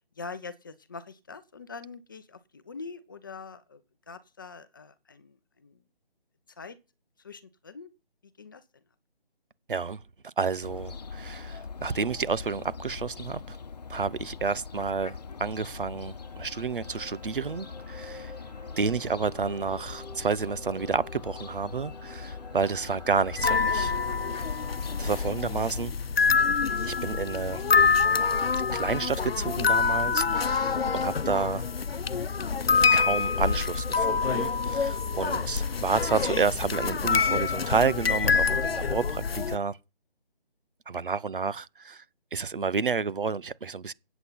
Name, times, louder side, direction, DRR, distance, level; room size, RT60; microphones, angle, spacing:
voice 1, 0.2-3.8 4.1-5.8 6.6-6.8 7.2-7.9 8.4-8.6 19.2-19.3 25.3-25.4 35.7-35.8, left 4 dB, 20° left, 0.8 m, -44 dB
voice 2, 9.7-13.6 13.9-18.3 18.8-23.9 25.0-25.9 26.8-27.6 28.7-31.7 32.9-39.8 40.9-42.0 42.3-43.9, right 5 dB, 60° right, 1.0 m, -30 dB
Fowl, 10.6-25.8, left 5 dB, 45° left, 1.1 m, -41 dB
sound 1, 16.0-28.3 28.6-28.8, left 2 dB, ahead, 1.6 m, -50 dB
sound 2, 23.4-39.6, left 5 dB, 75° left, 0.8 m, -26 dB
16.0 x 8.3 x 5.7 m
figure-of-eight pair, 160°, 30 cm